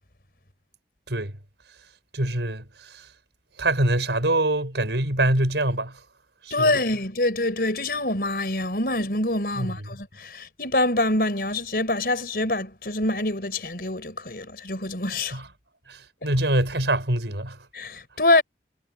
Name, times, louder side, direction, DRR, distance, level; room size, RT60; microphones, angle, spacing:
voice 1, 2.1-3.1 3.6-6.0 6.4-6.8 9.6-9.7 15.3-15.5 15.9-17.6, right 1 dB, 85° right, 5.5 m, -24 dB
voice 2, 6.5-15.4 16.2-16.3 17.7-18.4, left 2 dB, 55° left, 5.4 m, -25 dB
head